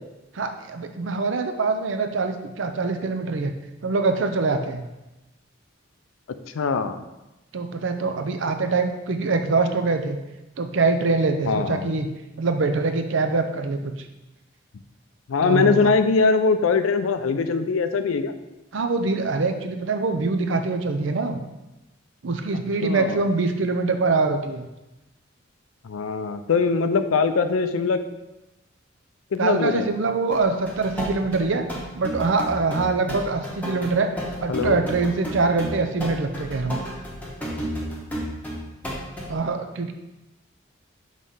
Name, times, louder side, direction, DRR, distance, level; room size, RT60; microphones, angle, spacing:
voice 1, 0.3-3.5 3.8-4.9 7.5-10.2 10.6-12.1 12.4-13.9 15.4-15.9 18.7-21.4 22.2-24.7 29.4-31.7 31.9-34.1 34.4-36.8 39.3-39.9, right 3 dB, 65° right, 7 dB, 0.5 m, -24 dB
voice 2, 6.5-7.0 11.5-11.9 15.3-18.3 22.5-23.2 25.8-28.0 29.3-29.9 34.5-34.8, left 4 dB, 90° left, 10 dB, 0.4 m, -22 dB
sound 1, 30.3-39.3, equal, 10° left, 1.0 m, -32 dB
5.3 x 3.2 x 5.5 m, 1.0 s
head